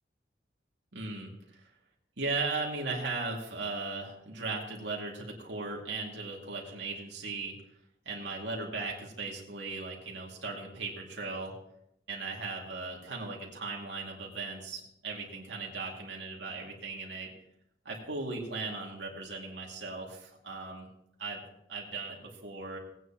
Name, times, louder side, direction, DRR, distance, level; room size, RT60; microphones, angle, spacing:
voice 1, 0.9-1.7 2.2-7.6 8.1-11.5 12.1-17.3 17.8-20.9 21.2-21.4 21.7-22.8, right 3 dB, 90° right, -2 dB, 2.3 m, -37 dB
18.0 x 9.4 x 3.0 m, 0.78 s
head